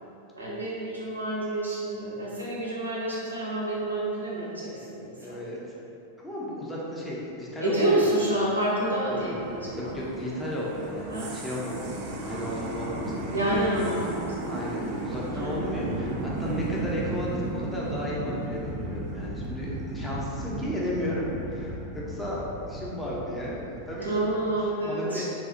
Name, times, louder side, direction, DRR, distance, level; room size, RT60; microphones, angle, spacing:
voice 1, 0.4-5.4 7.6-10.0 11.1-11.3 13.3-14.5 15.4-15.6 15.9-16.2 24.0-25.2, right 1 dB, 85° right, -7 dB, 0.7 m, -28 dB
voice 2, 5.2-5.6 6.2-8.1 9.1-9.4 9.7-13.6 14.4-24.3 24.8-25.2, equal, 10° left, -6 dB, 0.7 m, -34 dB
sound 1, 8.3-24.6, right 2 dB, 50° right, 0.4 m, -35 dB
3.7 x 2.3 x 2.7 m, 2.7 s
figure-of-eight pair, 90°, 0 cm